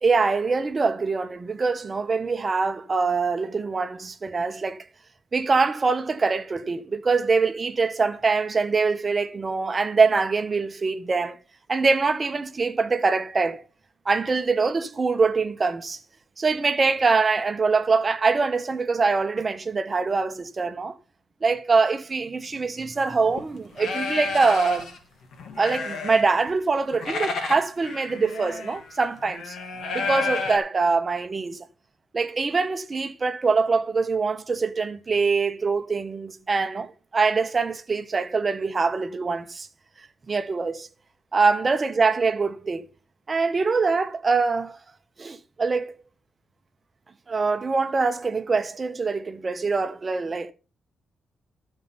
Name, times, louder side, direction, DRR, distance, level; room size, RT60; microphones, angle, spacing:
voice 1, 0.0-4.8 5.3-11.4 11.7-13.6 14.0-16.0 16.4-20.9 21.4-24.9 25.6-29.6 29.9-31.7 32.1-39.7 40.3-40.9 41.3-42.9 43.3-44.8 45.2-45.9 47.3-50.5, right 4 dB, 30° right, 0.9 m, -24 dB
sound 1, 23.2-23.4 23.8-25.0 25.3-26.5 26.8-30.6, left 4 dB, 60° left, 1.9 m, -31 dB
12.0 x 5.4 x 5.5 m
cardioid pair, 125°, 0 cm